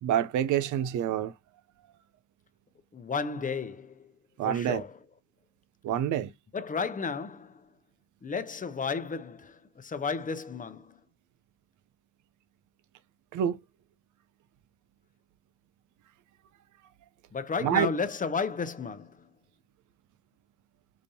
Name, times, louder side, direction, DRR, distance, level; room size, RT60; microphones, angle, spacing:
voice 1, 0.0-1.3 4.4-4.8 5.8-6.3 13.3-13.6 17.6-17.9, right 10 dB, 75° right, 0.7 m, -27 dB
voice 2, 2.9-4.1 4.4-5.0 6.5-7.7 8.2-11.0 17.3-19.3, left 5 dB, 25° left, 0.7 m, -33 dB
4.9 x 2.6 x 2.7 m
cardioid pair, 90°, 30 cm